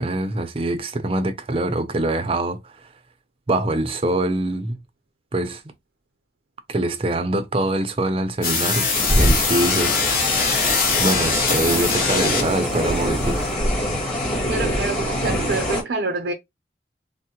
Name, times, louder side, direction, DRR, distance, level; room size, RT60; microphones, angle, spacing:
voice 1, 0.0-2.9 3.5-4.8 5.3-5.6 6.7-10.3 11.0-13.5, right 2 dB, 30° right, 0.5 m, -24 dB
sound 1, 8.4-12.7, left 4 dB, 50° left, 1.0 m, -22 dB
sound 2, 8.9-15.8, equal, 35° left, 1.5 m, -24 dB
voice 2, 14.5-16.3, right 3 dB, 80° right, 0.6 m, -26 dB
3.5 x 2.1 x 2.8 m
head